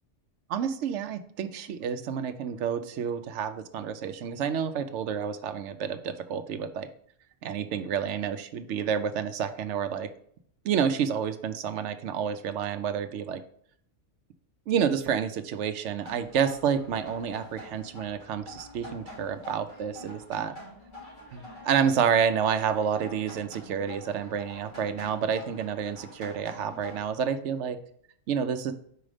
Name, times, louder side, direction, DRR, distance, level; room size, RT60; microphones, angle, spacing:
voice 1, 0.5-6.9 7.4-10.1 10.6-13.4 14.7-20.5 21.3-27.8 28.3-28.7, right 7 dB, 75° right, 10 dB, 0.9 m, -29 dB
sound 1, 16.0-27.1, left 1 dB, 40° left, 3.2 m, -46 dB
5.1 x 4.8 x 4.9 m, 0.64 s
omnidirectional pair, 1.2 m